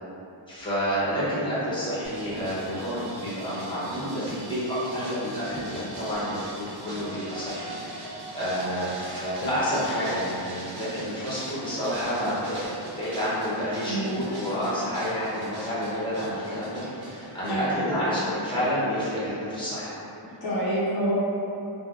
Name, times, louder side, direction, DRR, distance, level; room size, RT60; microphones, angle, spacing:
voice 1, 0.5-6.5 6.8-8.1 8.3-19.9, equal, 10° left, -11 dB, 0.9 m, -29 dB
sound 1, 2.0-17.5, right 1 dB, 60° right, 0.6 m, -41 dB
voice 2, 13.9-14.3 17.5-17.9 20.4-21.1, right 1 dB, 55° left, -10 dB, 0.7 m, -27 dB
3.1 x 2.2 x 2.5 m, 2.9 s
wide cardioid pair, 125°, 46 cm